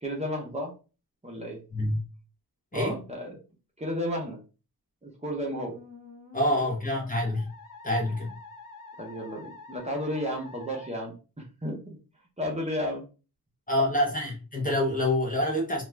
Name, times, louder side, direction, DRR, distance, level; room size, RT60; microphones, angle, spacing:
voice 1, 0.0-0.7 1.2-1.6 2.7-3.4 3.8-4.4 5.0-5.8 9.0-12.0 12.4-13.0, equal, 20° right, -2 dB, 0.7 m, -33 dB
voice 2, 1.7-2.0 2.7-3.0 6.3-7.5 7.8-8.3 13.7-15.8, left 1 dB, 20° left, -1 dB, 0.7 m, -26 dB
Musical instrument, 5.7-10.9, left 3 dB, 60° left, 0.7 m, -47 dB
2.4 x 2.3 x 3.1 m, 0.33 s
wide cardioid pair, 145°, 37 cm